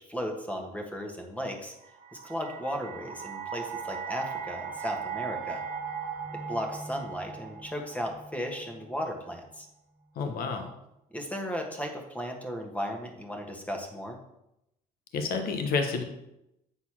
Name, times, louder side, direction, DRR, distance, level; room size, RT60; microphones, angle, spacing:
voice 1, 0.0-1.7 2.2-5.6 6.3-9.7 11.1-14.2, equal, 10° left, 2 dB, 1.4 m, -35 dB
sound 1, 1.8-9.0, right 6 dB, 45° right, 1.5 m, -38 dB
voice 2, 10.2-10.7 15.1-16.0, left 4 dB, 65° left, 6 dB, 1.1 m, -29 dB
8.3 x 4.0 x 6.0 m, 0.85 s
cardioid pair, 110°, 17 cm